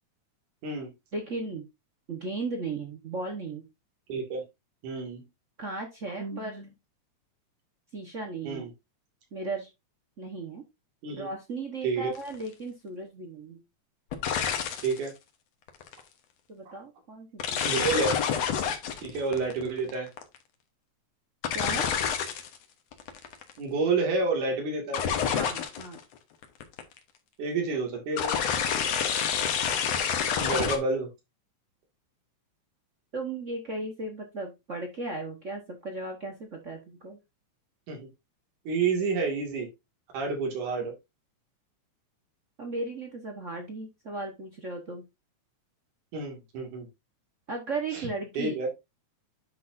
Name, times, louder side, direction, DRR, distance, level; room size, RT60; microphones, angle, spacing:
voice 1, 1.1-1.6 2.1-3.7 5.6-6.8 7.9-8.6 9.3-9.7 10.2-10.6 11.1-13.6 16.5-17.8 21.5-21.9 25.3-26.0 29.4-29.5 33.1-37.2 42.6-45.0 47.5-48.5, right 3 dB, 65° right, 3 dB, 0.7 m, -36 dB
voice 2, 4.1-4.4 4.8-5.3 8.4-8.7 11.0-11.3 11.8-12.1 14.8-15.1 17.6-18.2 19.0-20.1 23.6-25.0 27.4-28.3 30.4-31.1 37.9-38.1 38.7-39.7 40.1-40.9 46.1-46.9 47.9-48.1 48.4-48.7, right 4 dB, 85° right, 2 dB, 3.7 m, -29 dB
sound 1, 12.2-12.4 14.1-15.0 15.7-16.0 17.4-20.4 21.4-22.6 22.9-23.5 24.9-26.0 26.4-27.0 28.2-30.8, left 8 dB, 65° left, 2.1 m, -28 dB
9.9 x 6.0 x 2.6 m, 0.22 s
omnidirectional pair, 3.4 m